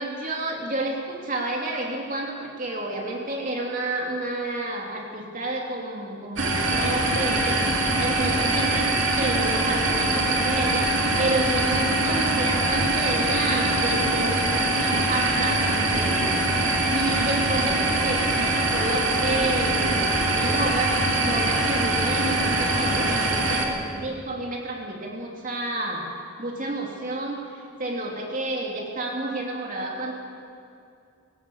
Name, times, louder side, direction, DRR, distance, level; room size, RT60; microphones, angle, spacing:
voice 1, 0.0-7.6 8.0-26.1 26.4-30.1, right 2 dB, 40° right, -1 dB, 3.0 m, -30 dB
sound 1, 6.4-23.7, right 2 dB, 65° right, 3.0 m, -23 dB
20.5 x 18.5 x 8.5 m, 2.5 s
head